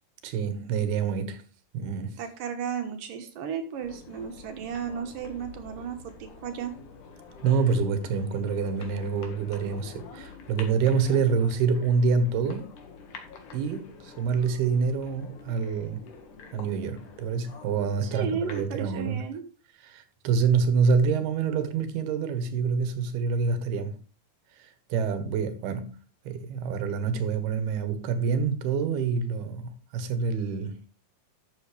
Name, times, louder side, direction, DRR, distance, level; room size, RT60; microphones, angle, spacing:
voice 1, 0.2-1.4 1.7-2.2 7.4-12.7 13.5-16.1 16.5-19.2 19.8-24.0 24.6-26.0 26.3-30.9, right 5 dB, 85° right, 3.3 m, -27 dB
voice 2, 2.2-6.7 18.0-19.5, right 7 dB, 65° right, 2.6 m, -34 dB
sound 1, 3.8-18.6, left 5 dB, 60° left, 2.9 m, -47 dB
12.0 x 7.8 x 3.3 m
omnidirectional pair, 4.4 m